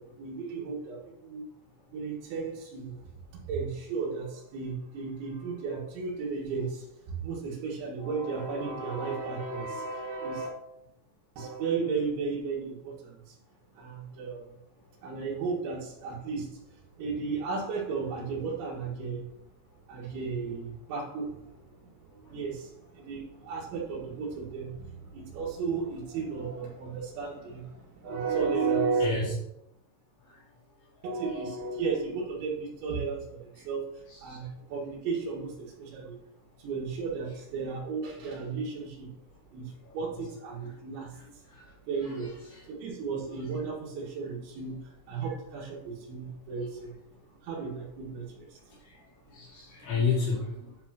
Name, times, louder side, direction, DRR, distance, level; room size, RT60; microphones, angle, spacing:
voice 1, 0.0-1.5 1.9-3.0 3.4-10.5 11.4-13.4 13.8-14.5 15.0-19.5 19.9-21.8 22.1-29.1 31.0-36.2 36.6-39.1 39.5-41.4 41.9-47.0 47.4-48.6, right 4 dB, 80° right, -7 dB, 4.1 m, -34 dB
voice 2, 49.3-50.7, left 5 dB, 65° left, -6 dB, 4.4 m, -30 dB
9.2 x 8.1 x 3.0 m, 0.82 s
omnidirectional pair, 5.4 m